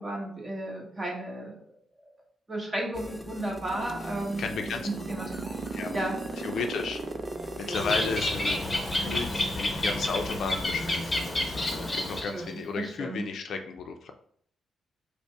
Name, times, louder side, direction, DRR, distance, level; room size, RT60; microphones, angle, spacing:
voice 1, 0.0-1.6 2.5-4.5 4.8-5.6 5.9-6.2 7.6-8.1 11.8-13.2, right 1 dB, 20° right, -1 dB, 1.5 m, -34 dB
sound 1, 2.9-11.9, equal, 5° left, 0.4 m, -41 dB
sound 2, 3.2-9.8, right 5 dB, 50° right, 0.6 m, -36 dB
voice 2, 4.4-4.9 5.7-6.0 6.4-7.0 7.6-14.1, left 5 dB, 65° left, 5 dB, 0.5 m, -34 dB
Bird, 7.7-12.5, left 1 dB, 25° left, 1.0 m, -30 dB
5.3 x 2.2 x 4.6 m, 0.62 s
cardioid pair, 110°, 0 cm